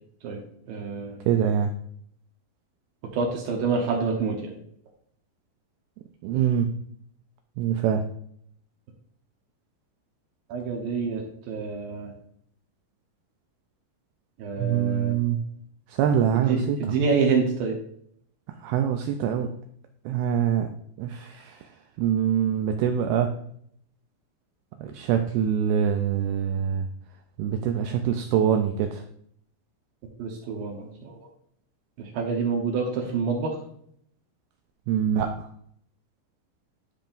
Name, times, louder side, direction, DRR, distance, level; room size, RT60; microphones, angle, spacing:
voice 1, 0.7-1.3 3.1-4.5 10.5-12.1 14.4-15.1 16.5-17.8 30.2-31.3 32.0-33.6, right 5 dB, 70° right, 0 dB, 2.4 m, -27 dB
voice 2, 1.3-1.7 6.2-6.7 7.6-8.0 14.6-15.4 15.9-17.0 18.6-19.5 20.1-20.7 21.0-23.3 24.8-26.9 27.4-29.0 34.9-35.5, right 9 dB, 90° right, 5 dB, 2.2 m, -24 dB
12.0 x 5.3 x 2.6 m, 0.67 s
omnidirectional pair, 5.1 m